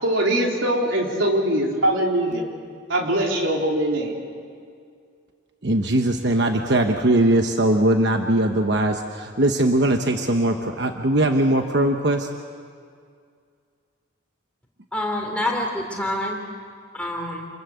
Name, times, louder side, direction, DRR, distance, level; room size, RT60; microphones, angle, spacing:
voice 1, 0.0-2.4 2.9-4.2, right 1 dB, 80° right, 0 dB, 4.1 m, -22 dB
voice 2, 5.6-12.3, right 1 dB, 60° right, 4 dB, 1.1 m, -20 dB
voice 3, 14.9-16.4 16.9-17.5, left 1 dB, 5° left, 0 dB, 3.4 m, -26 dB
28.0 x 21.0 x 8.1 m, 2.2 s
head